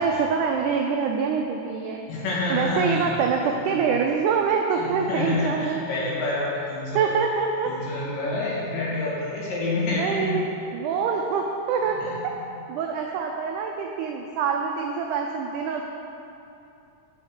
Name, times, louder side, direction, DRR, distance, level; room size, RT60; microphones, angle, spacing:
voice 1, 0.0-2.1 2.5-5.9 6.9-7.7 10.0-10.4 10.7-12.0 12.7-15.8, right 6 dB, 85° right, 2 dB, 1.7 m, -25 dB
voice 2, 2.1-3.9 4.7-7.2 7.7-10.4 11.9-12.5 13.0-13.1, left 2 dB, 70° left, -7 dB, 3.4 m, -28 dB
6.5 x 6.5 x 6.5 m, 2.8 s
omnidirectional pair, 4.1 m